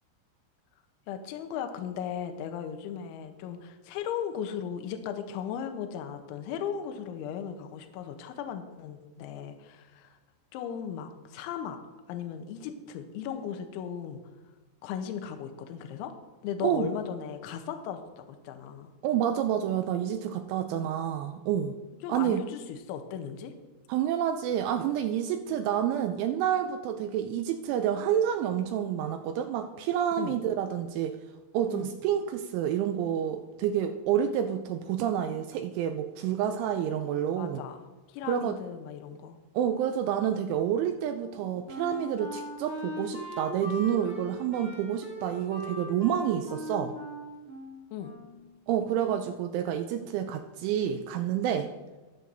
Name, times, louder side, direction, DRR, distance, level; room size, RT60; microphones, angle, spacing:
voice 1, 1.1-10.2 10.5-11.8 12.1-14.2 14.8-16.1 16.4-18.9 22.0-23.5 30.2-30.4 31.7-31.9 37.4-39.4 47.9-48.1, left 8 dB, 80° left, 6 dB, 3.0 m, -37 dB
voice 2, 19.0-21.7 22.1-22.4 23.9-31.2 31.5-37.6 38.3-38.6 39.6-46.9 48.7-51.7, right 9 dB, 85° right, 6 dB, 2.8 m, -29 dB
Wind instrument woodwind instrument, 41.2-48.5, equal, 20° left, 1.4 m, -40 dB
20.5 x 7.6 x 2.7 m, 1.2 s
omnidirectional pair, 5.9 m